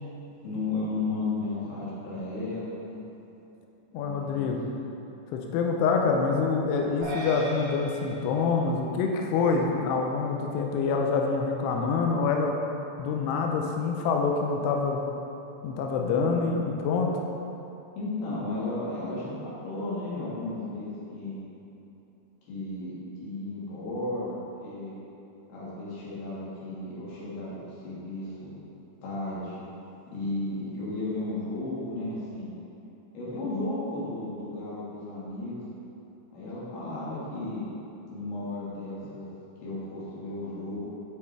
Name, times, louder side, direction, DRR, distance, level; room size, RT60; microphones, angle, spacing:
voice 1, 0.4-3.0 3.9-4.5 18.0-21.4 22.5-22.9 23.2-24.4 24.6-24.9 25.5-28.5 29.0-29.6 30.1-32.5 33.1-35.6 36.3-37.6 38.1-39.2 39.6-40.9, left 2 dB, 60° left, -8 dB, 3.4 m, -34 dB
voice 2, 3.9-4.6 5.3-12.5 13.0-15.0 15.6-17.1, left 4 dB, 90° left, 1 dB, 2.4 m, -26 dB
sound 1, 7.0-9.5, equal, 55° right, 3.1 m, -39 dB
12.0 x 5.2 x 3.4 m, 2.9 s
omnidirectional pair, 5.5 m